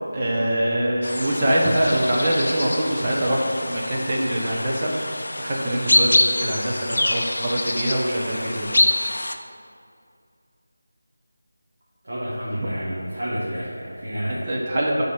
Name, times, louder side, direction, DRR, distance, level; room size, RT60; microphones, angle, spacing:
voice 1, 0.0-8.8 14.5-15.0, right 1 dB, 25° right, -4 dB, 1.0 m, -24 dB
sound 1, 1.0-9.3, left 1 dB, 55° left, 0.5 m, -25 dB
voice 2, 12.0-14.4, equal, 45° right, -8 dB, 1.5 m, -29 dB
7.0 x 4.3 x 6.1 m, 2.3 s
figure-of-eight pair, 165°, 0 cm